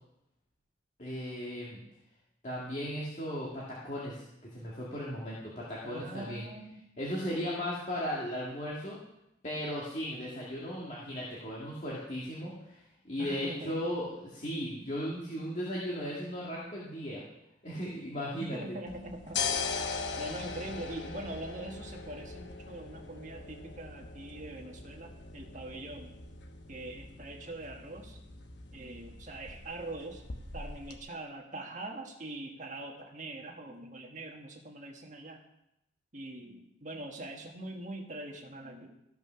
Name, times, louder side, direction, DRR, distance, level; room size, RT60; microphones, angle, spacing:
voice 1, 1.0-1.8 2.4-4.2 4.5-6.5 7.0-9.0 9.4-17.2 17.6-18.8, equal, 40° left, -6 dB, 2.0 m, -36 dB
voice 2, 5.8-6.8 13.2-13.8 18.3-19.4 20.2-26.2 26.7-28.2 28.7-30.2 30.5-35.4 36.1-38.9, right 2 dB, 40° right, 1 dB, 1.6 m, -43 dB
sound 1, 18.9-31.0, left 5 dB, 65° left, 1.1 m, -40 dB
14.0 x 5.8 x 5.7 m, 0.86 s
head